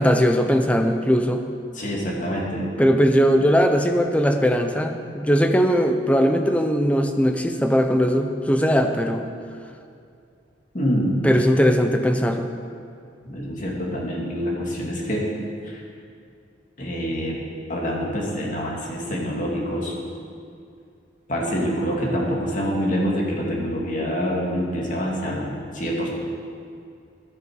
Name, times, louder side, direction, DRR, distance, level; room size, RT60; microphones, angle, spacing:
voice 1, 0.0-1.4 2.8-9.3 11.2-12.5, equal, 5° left, 6 dB, 0.7 m, -19 dB
voice 2, 1.7-2.6 10.7-11.3 13.2-15.3 15.7-15.8 16.8-17.4 17.7-19.9 21.3-26.1, equal, 40° left, -2 dB, 2.4 m, -26 dB
14.5 x 11.0 x 4.8 m, 2.4 s
head